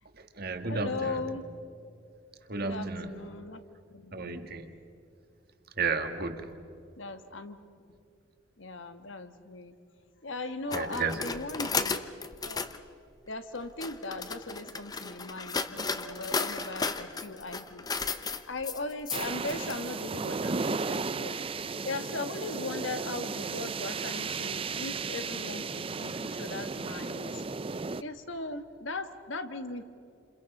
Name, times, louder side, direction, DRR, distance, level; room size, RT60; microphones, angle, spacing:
voice 1, 0.1-1.4 2.5-3.2 4.1-4.8 5.8-6.5 10.7-11.2 14.0-14.3 16.0-16.6 25.5-25.8 26.1-26.2, right 4 dB, 50° right, 7 dB, 1.7 m, -34 dB
voice 2, 0.7-1.4 2.6-3.6 3.9-4.4 7.0-7.6 8.6-9.7 10.2-12.1 12.4-12.7 13.3-17.9 18.5-21.4 21.8-27.4 28.0-29.8, left 3 dB, 80° left, 9 dB, 1.5 m, -38 dB
sound 1, 10.7-12.8 13.5-19.7, left 4 dB, 20° left, 0.8 m, -34 dB
sound 2, 19.1-28.0, right 4 dB, 30° right, 0.5 m, -34 dB
30.0 x 28.0 x 5.4 m, 2.6 s
head